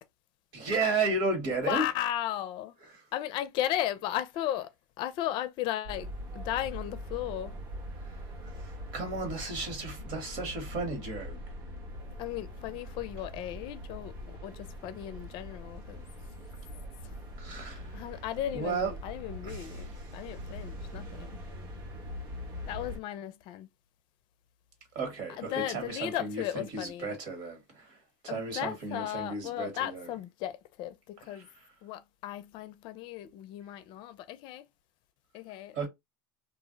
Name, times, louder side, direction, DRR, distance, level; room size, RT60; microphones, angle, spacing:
voice 1, 0.5-1.8 2.9-3.0 8.0-8.2 8.6-11.4 17.4-18.1 18.5-18.9 19.4-19.9 24.9-28.0 28.2-30.1 31.3-31.4 35.7-35.9, right 3 dB, 60° right, 1.5 m, -34 dB
voice 2, 1.7-2.7 3.1-4.7 5.0-7.6 12.2-16.1 17.0-17.1 17.5-21.5 22.7-23.7 25.4-27.1 28.3-31.5 31.8-34.7 35.3-35.9, left 12 dB, 50° left, 0.5 m, -36 dB
sound 1, 5.8-23.0, equal, 85° right, 1.1 m, -42 dB
2.5 x 2.0 x 3.8 m
supercardioid pair, 125°, 11 cm